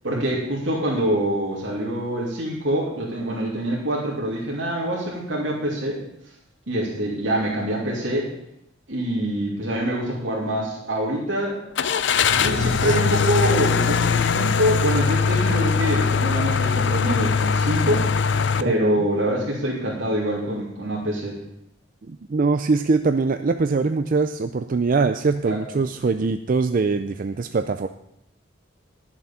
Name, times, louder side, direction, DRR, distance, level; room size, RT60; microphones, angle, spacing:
voice 1, 0.0-6.0 6.7-8.3 8.9-11.6 12.3-18.1 18.6-21.4 25.4-25.6, right 1 dB, 85° right, -5 dB, 2.7 m, -25 dB
Car / Engine starting, 11.8-18.6, left 5 dB, 65° left, 0.5 m, -21 dB
voice 2, 18.6-19.1 22.0-27.9, right 4 dB, 45° right, 8 dB, 0.4 m, -22 dB
11.5 x 7.2 x 7.2 m, 0.76 s
head